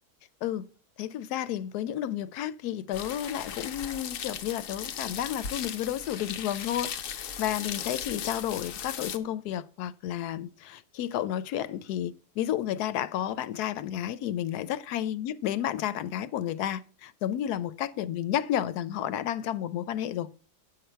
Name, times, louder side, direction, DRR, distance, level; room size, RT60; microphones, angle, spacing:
voice 1, 0.4-0.7 1.0-20.3, left 11 dB, 90° left, 1.1 m, -31 dB
sound 1, 2.9-9.2, left 8 dB, 65° left, 1.1 m, -37 dB
9.2 x 6.8 x 4.4 m
omnidirectional pair, 1.6 m